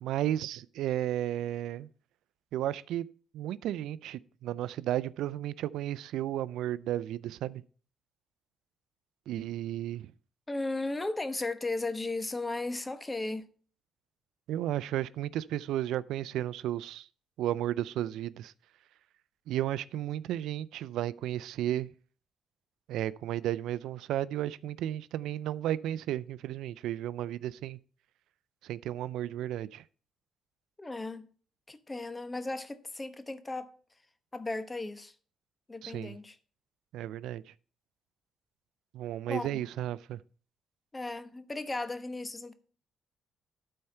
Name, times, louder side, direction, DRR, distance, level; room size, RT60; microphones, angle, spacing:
voice 1, 0.0-1.9 2.5-3.1 3.3-7.6 9.3-10.1 14.5-17.1 17.4-18.5 19.5-21.9 22.9-27.8 28.6-29.9 35.8-36.2 36.9-37.5 38.9-40.2, right 12 dB, 85° right, 0.3 m, -33 dB
voice 2, 10.5-13.5 30.8-31.3 31.7-33.7 34.3-35.1 35.7-36.3 39.3-39.5 40.9-42.5, left 2 dB, 20° left, 0.9 m, -35 dB
12.0 x 4.5 x 5.5 m
cardioid pair, 90°, 0 cm